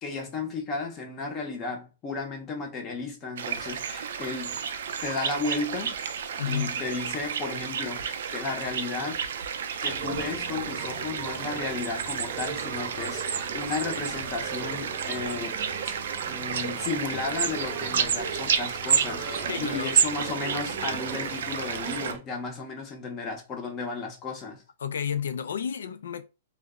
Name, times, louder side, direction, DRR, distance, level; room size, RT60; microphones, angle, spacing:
voice 1, 0.0-4.6 5.0-6.0 6.5-9.2 9.8-15.6 15.9-16.0 16.3-24.6, left 4 dB, 25° left, 0.6 m, -34 dB
sound 1, 3.4-22.1, right 7 dB, 75° right, 0.4 m, -31 dB
voice 2, 6.4-6.8 19.5-19.9 24.8-26.2, left 8 dB, 90° left, 0.3 m, -31 dB
sound 2, 9.8-22.2, right 5 dB, 40° right, 0.7 m, -39 dB
2.0 x 2.0 x 3.5 m
hypercardioid pair, 155°, 0 cm